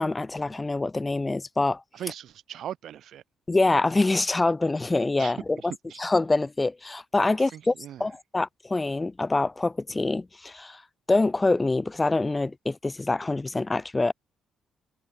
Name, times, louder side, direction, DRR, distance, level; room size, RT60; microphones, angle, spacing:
voice 1, 0.0-1.8 3.5-5.6 6.0-7.7 8.0-10.8 11.1-14.1, left 2 dB, 20° left, 1.1 m, -25 dB
voice 2, 1.9-3.2 5.2-6.0 7.4-8.1, right 11 dB, 70° right, 7.8 m, -39 dB
cardioid pair, 90°, 0 cm